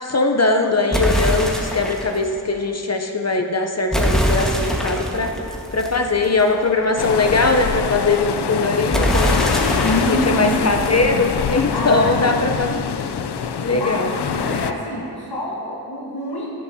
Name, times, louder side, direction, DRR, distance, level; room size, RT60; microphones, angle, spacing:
voice 1, 0.0-5.3 5.7-9.3 10.0-12.7 13.6-14.1, left 3 dB, 40° left, 4 dB, 0.7 m, -20 dB
sound 1, 0.9-2.2 3.9-6.6 8.9-11.6, equal, ahead, 1.4 m, -23 dB
sound 2, 7.0-14.7, left 6 dB, 85° left, 0.6 m, -24 dB
voice 2, 9.8-10.6 11.7-12.1 13.7-16.5, left 1 dB, 70° left, -5 dB, 1.5 m, -26 dB
14.0 x 11.0 x 2.8 m, 2.6 s
wide cardioid pair, 70°, 39 cm